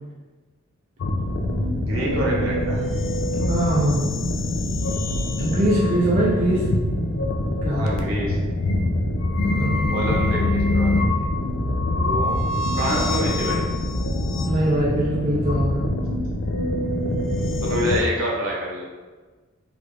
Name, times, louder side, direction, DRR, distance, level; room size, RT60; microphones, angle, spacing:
sound 1, 1.0-18.0, left 1 dB, 65° left, 0.4 m, -24 dB
voice 1, 1.7-2.8 7.6-8.4 9.5-11.3 12.0-12.5 12.7-13.6 17.2-18.9, equal, 70° right, -3 dB, 0.8 m, -28 dB
voice 2, 3.5-4.0 5.4-6.6 6.9-7.1 7.6-7.9 9.5-9.8 14.4-15.9, right 1 dB, 40° right, -6 dB, 0.5 m, -22 dB
3.4 x 2.4 x 3.2 m, 1.3 s
head